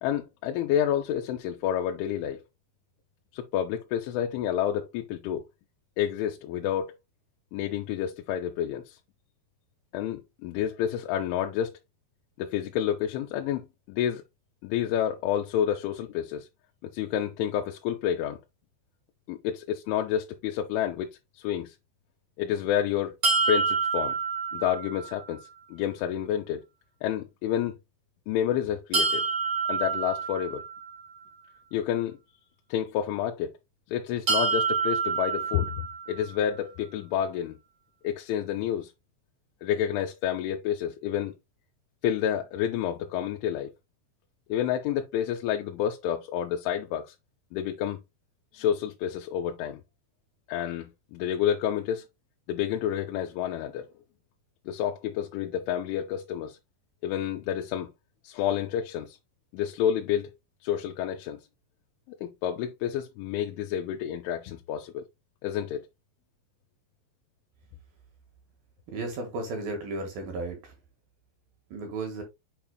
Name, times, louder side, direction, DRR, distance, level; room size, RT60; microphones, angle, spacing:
voice 1, 0.0-2.4 3.3-5.4 6.0-7.0 7.5-9.0 9.9-11.8 12.4-14.2 14.6-16.5 16.8-18.4 19.3-21.1 21.4-21.8 22.4-23.1 23.5-24.2 24.5-26.6 27.0-27.8 28.3-29.2 29.7-30.6 31.7-32.2 32.7-33.5 33.9-37.6 38.0-38.9 39.6-41.3 42.0-43.7 44.5-47.1 47.5-48.0 48.5-49.8 50.5-52.1 52.5-53.9 54.7-56.6 57.0-57.9 58.2-59.2 59.5-60.3 60.6-61.4 62.1-65.0 65.4-65.9, left 10 dB, 85° left, 3.1 m, -29 dB
sound 1, 23.2-25.2 28.9-31.0 34.3-36.3, right 5 dB, 35° right, 1.8 m, -27 dB
voice 2, 68.9-70.7 71.7-72.2, right 2 dB, 60° right, 2.9 m, -34 dB
7.4 x 6.0 x 2.2 m
omnidirectional pair, 5.4 m